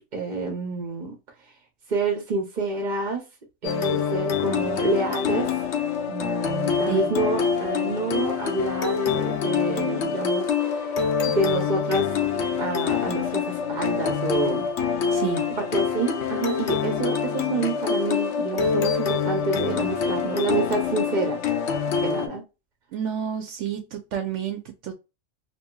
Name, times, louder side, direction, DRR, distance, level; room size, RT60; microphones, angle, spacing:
voice 1, 0.1-1.1 1.9-3.2 3.6-5.5 6.1-10.9 11.2-12.1 12.6-14.6 15.5-21.4 22.0-22.4, right 3 dB, 45° right, 0.8 m, -28 dB
sound 1, 3.6-22.3, left 6 dB, 70° left, 0.9 m, -25 dB
voice 2, 15.1-15.4 22.9-24.9, right 8 dB, 75° right, 0.9 m, -30 dB
2.9 x 2.8 x 2.2 m
omnidirectional pair, 1.3 m